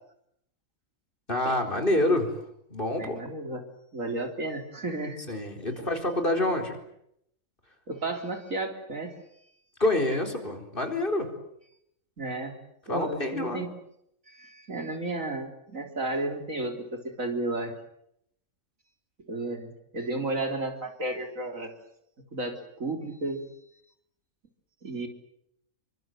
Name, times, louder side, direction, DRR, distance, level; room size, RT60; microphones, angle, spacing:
voice 1, 1.3-2.3 2.7-3.2 5.3-6.8 9.8-11.3 12.9-13.6, left 1 dB, 40° left, 5 dB, 4.5 m, -27 dB
voice 2, 3.0-3.6 3.9-5.2 5.8-5.9 7.9-9.2 12.2-12.6 12.9-13.7 14.3-17.7 19.3-21.7 22.3-23.4 24.8-25.1, right 2 dB, 70° right, 4 dB, 4.2 m, -33 dB
28.0 x 24.5 x 7.8 m, 0.75 s
omnidirectional pair, 1.4 m